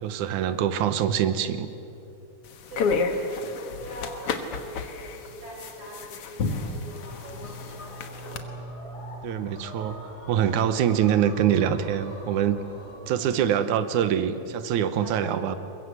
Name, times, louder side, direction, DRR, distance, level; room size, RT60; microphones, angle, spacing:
voice 1, 0.0-1.7 9.2-10.0 10.3-12.6 13.1-15.6, right 9 dB, 80° right, 11 dB, 2.5 m, -24 dB
sound 1, 2.5-8.4, left 4 dB, 55° left, 2.1 m, -31 dB
voice 2, 2.7-8.4 12.7-13.7 15.0-15.5, equal, 50° right, -2 dB, 6.9 m, -42 dB
sound 2, 6.8-12.9, equal, 30° left, 4.6 m, -42 dB
22.5 x 22.0 x 8.1 m, 2.7 s
omnidirectional pair, 3.5 m